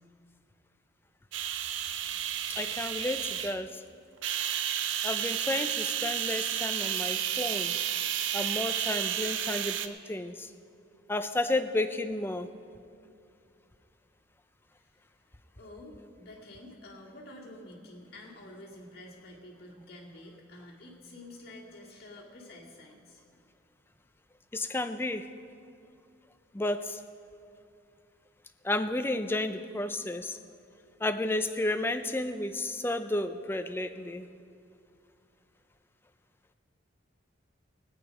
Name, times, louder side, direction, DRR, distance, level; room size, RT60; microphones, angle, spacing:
sound 1, 1.3-3.6 4.2-9.9, right 10 dB, 70° right, 0.6 m, -31 dB
voice 1, 2.6-3.8 5.0-7.8 8.3-10.5 11.1-12.5 24.5-25.3 26.5-27.0 28.6-30.4 31.0-34.3, left 2 dB, 10° left, 9 dB, 0.4 m, -32 dB
voice 2, 14.7-23.2, left 1 dB, 55° left, -3 dB, 2.3 m, -49 dB
18.0 x 9.0 x 5.3 m, 2.4 s
head